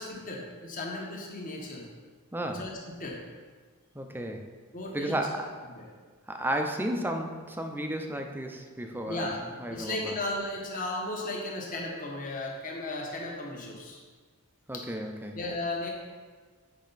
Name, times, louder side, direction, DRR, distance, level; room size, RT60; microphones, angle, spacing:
voice 1, 0.0-1.9 2.5-3.2 4.7-5.4 5.7-5.8 9.1-9.4 9.7-14.0 14.7-14.9 15.3-15.9, left 2 dB, 40° left, -2 dB, 1.3 m, -35 dB
voice 2, 2.3-2.6 3.9-4.5 4.9-5.5 6.3-9.3 9.6-10.2 14.7-15.4, right 1 dB, 10° right, 3 dB, 0.6 m, -33 dB
8.5 x 5.5 x 4.1 m, 1.5 s
head